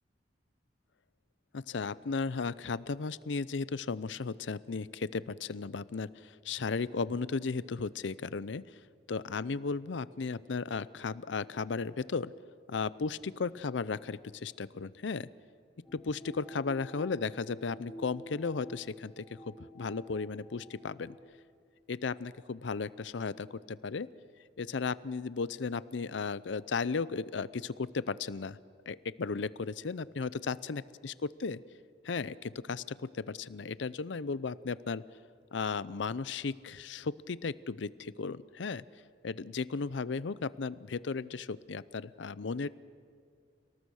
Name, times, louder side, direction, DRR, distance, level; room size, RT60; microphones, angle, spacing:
voice 1, 1.5-8.8 9.1-12.3 12.7-15.3 15.9-19.2 19.6-21.2 21.9-24.1 24.6-28.6 28.9-31.6 32.0-35.0 35.5-38.8 39.2-42.7, left 4 dB, 75° left, 18 dB, 0.6 m, -35 dB
sound 1, 15.8-21.2, equal, 5° right, 7.4 m, -50 dB
29.5 x 18.5 x 6.4 m, 2.3 s
head